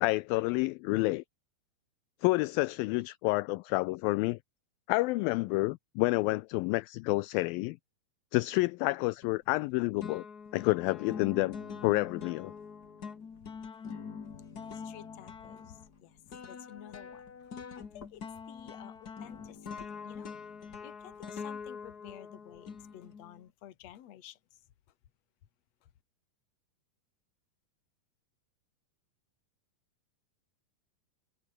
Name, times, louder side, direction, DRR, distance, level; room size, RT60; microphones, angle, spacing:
voice 1, 0.0-1.2 2.2-4.4 4.9-7.8 8.3-10.3 10.5-11.6 11.8-12.5, left 22 dB, 85° left, 2.1 m, -29 dB
sound 1, 9.2-9.7 10.0-23.4, left 6 dB, 40° left, 1.5 m, -44 dB
voice 2, 14.7-16.2 16.4-17.2 17.6-20.4 20.8-24.4, left 12 dB, 55° left, 2.2 m, -52 dB
omnidirectional pair, 4.5 m